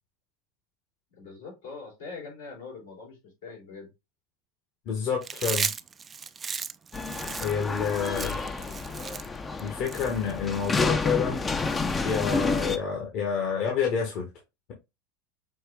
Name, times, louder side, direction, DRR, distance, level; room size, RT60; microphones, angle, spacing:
voice 1, 1.2-3.9 8.1-9.2, left 4 dB, 85° left, 3.2 m, -43 dB
voice 2, 4.8-5.7 7.4-8.4 9.6-11.4 12.0-14.3, left 6 dB, 60° left, 1.4 m, -28 dB
Chewing mastication, 5.2-10.7, right 6 dB, 25° right, 0.4 m, -35 dB
sound 1, 6.9-12.8, left 4 dB, 20° left, 0.6 m, -30 dB
6.1 x 2.5 x 3.5 m
hypercardioid pair, 100°, 0 cm